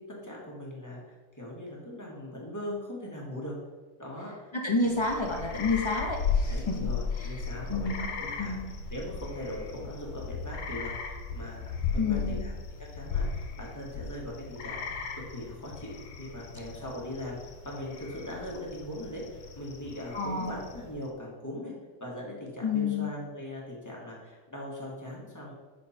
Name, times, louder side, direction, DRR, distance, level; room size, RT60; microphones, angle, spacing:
voice 1, 0.0-3.5 4.0-4.8 6.4-8.6 8.9-10.9 11.3-11.6 11.9-12.5 12.8-15.0 15.3-15.9 16.2-17.4 17.6-21.7 22.0-25.5, left 1 dB, 10° left, -4 dB, 1.5 m, -40 dB
voice 2, 4.6-6.9 7.2-7.4 7.7-8.1 8.4-8.7 12.0-12.4 20.1-20.6 22.6-23.1, left 3 dB, 40° left, 1 dB, 0.4 m, -29 dB
sound 1, 4.8-21.0, left 5 dB, 80° left, 1.3 m, -36 dB
6.5 x 4.7 x 4.2 m, 1.2 s
omnidirectional pair, 1.7 m